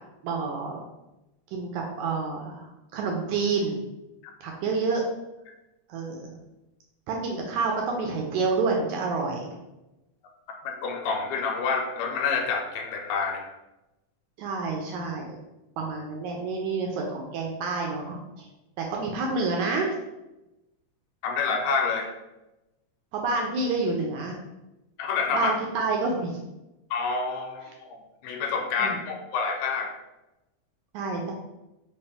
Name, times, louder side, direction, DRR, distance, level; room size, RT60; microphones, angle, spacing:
voice 1, 0.2-0.8 1.5-3.8 4.4-5.0 5.9-6.4 7.1-9.6 14.4-15.4 15.8-18.5 18.8-19.9 23.1-24.4 25.3-26.4 28.8-29.0 30.9-31.3, right 4 dB, 80° right, 0 dB, 1.8 m, -28 dB
voice 2, 10.8-13.5 21.2-22.1 25.0-25.5 26.9-30.0, left 5 dB, 85° left, 3 dB, 2.3 m, -28 dB
5.3 x 2.4 x 3.4 m, 0.97 s
omnidirectional pair, 3.8 m